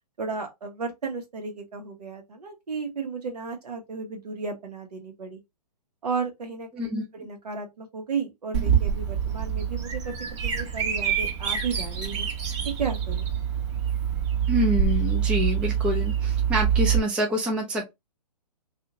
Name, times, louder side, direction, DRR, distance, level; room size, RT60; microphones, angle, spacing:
voice 1, 0.2-5.4 6.0-10.1 10.4-12.3 12.6-13.3, right 5 dB, 70° right, 1.2 m, -34 dB
voice 2, 6.7-7.0 14.5-17.9, left 1 dB, 5° right, 0.4 m, -27 dB
Bird vocalization bird call bird song, 8.5-17.0, right 8 dB, 45° right, 1.1 m, -25 dB
2.8 x 2.7 x 2.5 m
hypercardioid pair, 135°, 21 cm